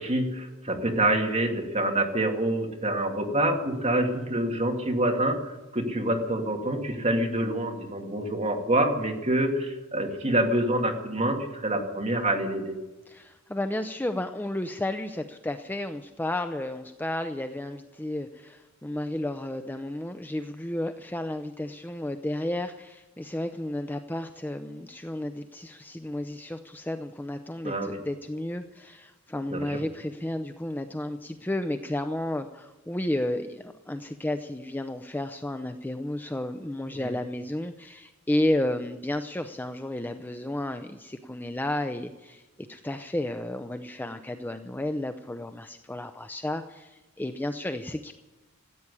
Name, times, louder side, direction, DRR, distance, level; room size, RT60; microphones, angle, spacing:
voice 1, 0.0-12.7 27.6-28.0 29.5-29.8, right 1 dB, 30° right, 2 dB, 2.3 m, -26 dB
voice 2, 13.1-42.4 42.7-48.1, left 1 dB, 10° left, 8 dB, 0.5 m, -32 dB
15.5 x 8.7 x 9.8 m, 1.1 s
head